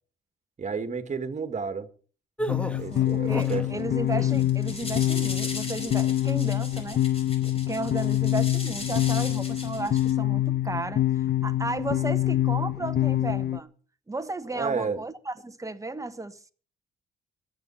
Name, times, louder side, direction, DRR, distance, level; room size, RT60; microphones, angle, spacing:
voice 1, 0.6-1.9 2.7-3.9 14.5-15.0, right 5 dB, 35° right, 2.0 m, -31 dB
sound 1, 2.4-3.7 4.1-4.5, equal, 5° left, 1.3 m, -33 dB
sound 2, 2.5-13.6, left 13 dB, 50° left, 0.8 m, -26 dB
sound 3, 2.9-3.1 3.4-3.8 4.2-10.1, left 2 dB, 30° left, 4.7 m, -39 dB
voice 2, 2.9-7.0 7.4-11.0 11.4-13.7 14.1-16.5, right 2 dB, 15° right, 1.4 m, -34 dB
22.5 x 9.1 x 4.3 m
cardioid pair, 90°, 20 cm